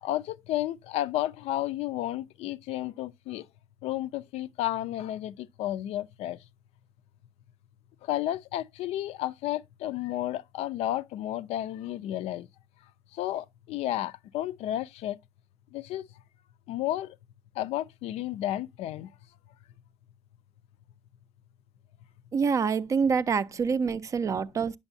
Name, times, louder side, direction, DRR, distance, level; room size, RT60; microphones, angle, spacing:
voice 1, 0.0-3.5 3.8-6.4 8.1-12.5 13.1-15.2 15.7-16.1 16.7-17.2 17.6-19.1, left 13 dB, 75° left, 0.4 m, -32 dB
voice 2, 22.3-24.8, right 5 dB, 30° right, 0.4 m, -26 dB
8.8 x 7.0 x 2.6 m
cardioid pair, 135°, 11 cm